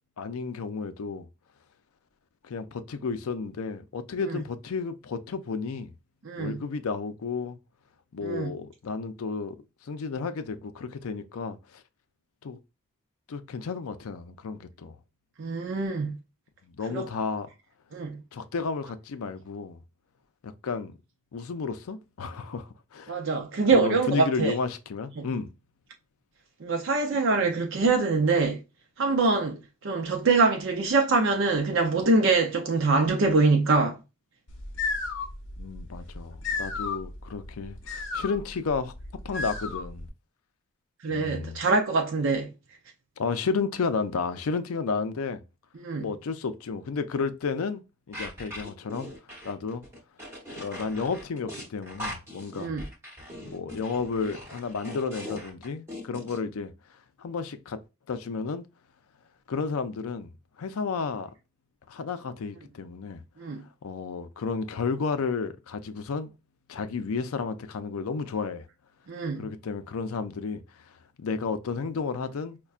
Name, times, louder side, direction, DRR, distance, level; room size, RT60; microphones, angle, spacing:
voice 1, 0.2-1.3 2.4-5.9 6.4-7.6 8.1-9.6 9.8-11.8 12.4-12.6 13.3-15.0 16.8-17.5 18.3-19.8 20.4-20.9 21.3-23.1 23.7-25.5 35.6-38.9 39.2-40.1 41.1-41.6 43.2-45.4 46.0-47.8 48.1-49.1 49.4-49.8 50.6-52.7 53.4-56.7 57.2-57.8 58.1-58.6 59.5-60.3 60.6-61.3 61.9-63.2 63.8-66.3 66.7-68.7 69.4-72.6, left 4 dB, 75° left, 0.4 m, -32 dB
voice 2, 6.2-6.6 8.2-8.5 15.4-16.2 16.9-17.0 17.9-18.2 23.1-24.5 25.2-25.3 26.6-28.6 29.0-29.6 29.8-34.0 41.0-42.5 45.8-46.1 52.6-52.8 63.4-63.6 69.1-69.5, right 3 dB, 55° right, 0.5 m, -24 dB
sound 1, 34.5-40.1, left 4 dB, 55° left, 0.8 m, -34 dB
sound 2, 48.1-56.4, equal, 10° right, 0.9 m, -41 dB
5.3 x 2.2 x 2.4 m
head